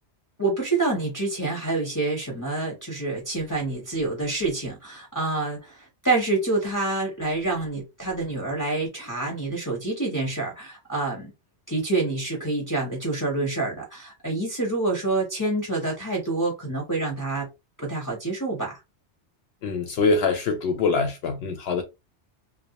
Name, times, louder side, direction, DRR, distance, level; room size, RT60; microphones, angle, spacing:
voice 1, 0.4-11.3 11.7-17.5 17.8-18.8, right 3 dB, 20° left, 0.7 m, -27 dB
voice 2, 19.6-21.8, left 4 dB, 70° left, 0.8 m, -24 dB
2.3 x 2.0 x 2.8 m
omnidirectional pair, 1.2 m